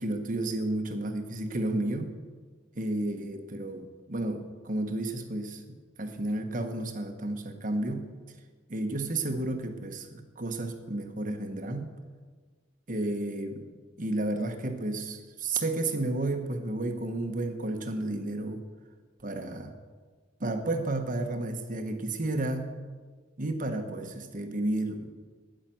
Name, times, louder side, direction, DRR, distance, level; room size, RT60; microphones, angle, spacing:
voice 1, 0.0-2.1 2.7-5.6 6.0-8.1 8.7-11.9 12.9-13.7 14.0-18.6 19.2-19.7 20.4-22.7 23.4-25.1, right 2 dB, 45° right, 6 dB, 1.3 m, -32 dB
10.0 x 10.0 x 7.7 m, 1.5 s
head